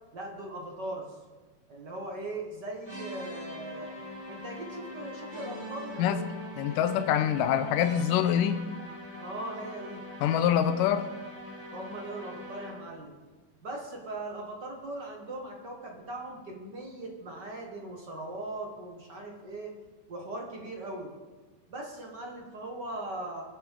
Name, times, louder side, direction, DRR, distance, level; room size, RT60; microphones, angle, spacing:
voice 1, 0.1-1.2 1.7-4.0 4.3-6.1 9.2-10.0 11.7-13.1 13.6-19.7 20.1-21.1 21.7-23.4, right 2 dB, 40° right, 0 dB, 1.8 m, -39 dB
sound 1, 2.8-13.0, left 1 dB, 15° right, 3.5 m, -42 dB
voice 2, 6.6-8.6 10.2-11.1, left 9 dB, 85° left, 8 dB, 2.3 m, -25 dB
22.5 x 8.2 x 3.7 m, 1.3 s
omnidirectional pair, 3.9 m